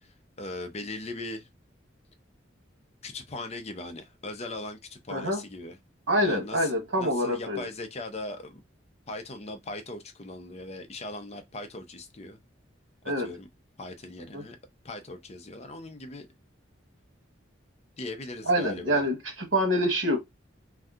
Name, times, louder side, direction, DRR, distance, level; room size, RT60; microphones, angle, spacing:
voice 1, 0.0-1.5 3.0-5.8 6.2-8.6 9.1-12.4 13.2-13.5 13.8-14.6 14.8-16.3 18.0-19.1, left 2 dB, 35° left, 0.6 m, -39 dB
voice 2, 5.1-5.4 6.1-7.7 13.0-13.3 14.3-14.4 18.5-19.2 19.5-20.2, equal, 80° right, 1.1 m, -25 dB
2.7 x 2.2 x 3.6 m
head